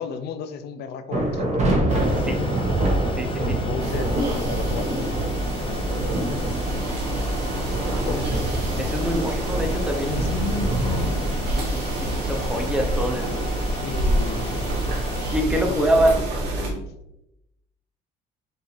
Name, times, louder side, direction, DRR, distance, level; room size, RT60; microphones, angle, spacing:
voice 1, 0.0-1.6 3.4-5.3 5.7-6.6 8.0-8.4 10.1-11.3 13.8-14.5 15.4-16.2 16.5-16.9, left 6 dB, 75° left, 10 dB, 0.5 m, -34 dB
sound 1, 1.1-16.5, right 1 dB, 45° right, 1.1 m, -28 dB
sound 2, 1.9-15.4, left 1 dB, 30° left, 0.7 m, -35 dB
voice 2, 3.2-3.6 7.9-8.2 8.8-10.3 11.5-13.4 15.3-16.1, right 1 dB, 5° right, 3 dB, 0.7 m, -25 dB
sound 3, 3.8-16.7, right 1 dB, 80° right, 1.2 m, -27 dB
5.3 x 2.7 x 3.2 m, 0.87 s
cardioid pair, 110°, 17 cm